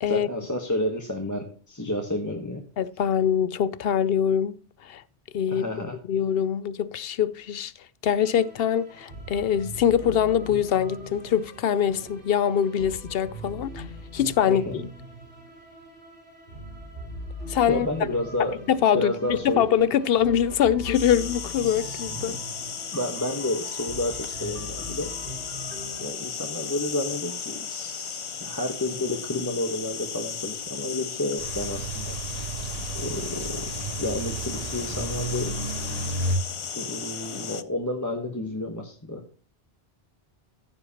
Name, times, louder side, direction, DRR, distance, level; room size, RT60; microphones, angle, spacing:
voice 1, 0.1-2.6 5.5-6.0 14.5-14.8 17.7-18.6 18.9-19.7 21.6-22.0 22.3-22.4 22.9-25.1 26.0-32.2 32.9-33.7 34.0-35.6 36.7-39.2, left 1 dB, 15° left, 1.2 m, -30 dB
voice 2, 2.8-4.6 4.8-5.0 5.3-5.7 6.1-7.7 8.0-13.9 14.1-14.9 17.5-17.9 18.4-22.4, left 9 dB, 70° left, 0.8 m, -24 dB
sound 1, 8.2-26.1, equal, 70° right, 4.2 m, -41 dB
sound 2, 20.9-37.6, left 6 dB, 40° left, 0.5 m, -35 dB
sound 3, 31.4-36.4, right 2 dB, 40° right, 2.2 m, -32 dB
14.5 x 7.7 x 2.9 m
omnidirectional pair, 1.0 m